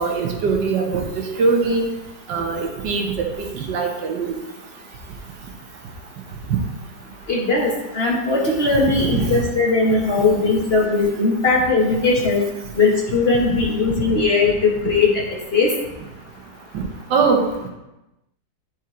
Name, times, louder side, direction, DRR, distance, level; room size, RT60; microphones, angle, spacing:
voice 1, 0.0-1.9 2.3-4.3 6.5-6.6 8.9-9.3 16.7-16.8 17.1-17.7, right 4 dB, 80° right, 2 dB, 1.7 m, -22 dB
voice 2, 7.3-12.4 12.7-15.7, left 3 dB, 40° left, -3 dB, 1.4 m, -19 dB
10.5 x 4.4 x 3.8 m, 0.97 s
omnidirectional pair, 1.9 m